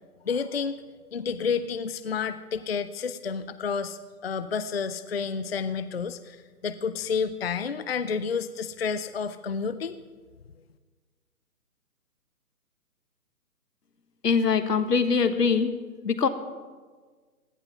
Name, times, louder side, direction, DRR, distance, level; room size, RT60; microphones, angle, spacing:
voice 1, 0.3-0.8 1.1-10.0, left 6 dB, 40° left, 13 dB, 0.4 m, -30 dB
voice 2, 14.2-15.7 16.0-16.3, left 5 dB, 85° left, 9 dB, 1.5 m, -22 dB
17.0 x 11.5 x 5.7 m, 1.5 s
hypercardioid pair, 155°, 47 cm